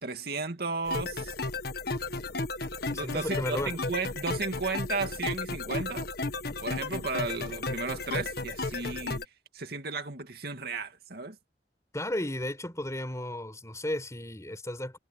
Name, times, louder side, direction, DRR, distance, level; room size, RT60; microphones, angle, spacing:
voice 1, 0.0-1.3 2.9-6.1 6.6-9.2 9.5-11.4, right 4 dB, 60° right, 2.4 m, -34 dB
sound 1, 0.9-9.2, left 3 dB, 60° left, 1.4 m, -34 dB
voice 2, 2.9-3.7 11.9-15.0, left 1 dB, 20° left, 4.4 m, -34 dB
head